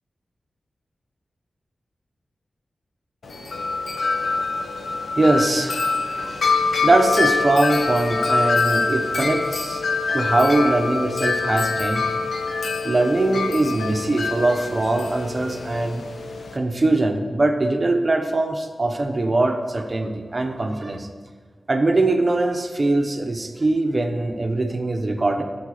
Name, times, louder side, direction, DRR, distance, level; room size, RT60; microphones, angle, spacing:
Wind chime, 3.2-16.6, left 4 dB, 70° left, 1.0 m, -24 dB
voice 1, 5.2-6.6 6.8-9.8 10.1-12.1 12.8-16.0 16.5-21.1 21.7-25.4, right 2 dB, 30° right, 5 dB, 1.0 m, -22 dB
12.5 x 7.9 x 4.9 m, 1.5 s
wide cardioid pair, 145°, 0 cm